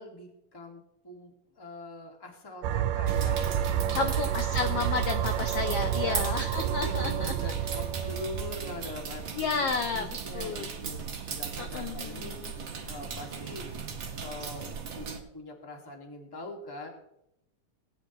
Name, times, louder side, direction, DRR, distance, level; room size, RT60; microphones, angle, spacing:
voice 1, 0.0-4.2 6.0-11.0 11.3-13.6 14.2-16.9, left 2 dB, 10° left, 1 dB, 1.2 m, -43 dB
sound 1, 2.6-9.2, right 10 dB, 90° right, 2.2 m, -30 dB
sound 2, 3.1-15.2, right 5 dB, 50° right, 1.8 m, -38 dB
voice 2, 3.9-7.5 9.3-10.1 10.3-10.7 11.6-12.5, left 5 dB, 75° left, 6 dB, 1.4 m, -32 dB
20.0 x 10.5 x 3.0 m, 0.83 s
omnidirectional pair, 3.7 m